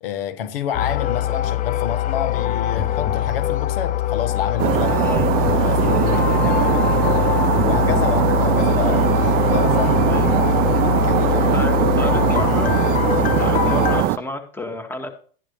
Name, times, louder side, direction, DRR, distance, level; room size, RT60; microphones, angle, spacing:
voice 1, 0.0-7.3 7.6-10.2 10.8-11.8 12.0-12.7, left 9 dB, 70° left, 1.4 m, -29 dB
sound 1, 0.7-14.0, left 10 dB, 25° left, 0.7 m, -22 dB
sound 2, 4.6-14.2, right 17 dB, 30° right, 0.4 m, -20 dB
voice 2, 5.0-5.3 6.1-6.3 8.1-8.2 10.1-10.8 11.3-12.7 13.2-15.1, left 2 dB, 5° left, 1.9 m, -31 dB
13.5 x 9.9 x 3.2 m
hypercardioid pair, 120°, 29 cm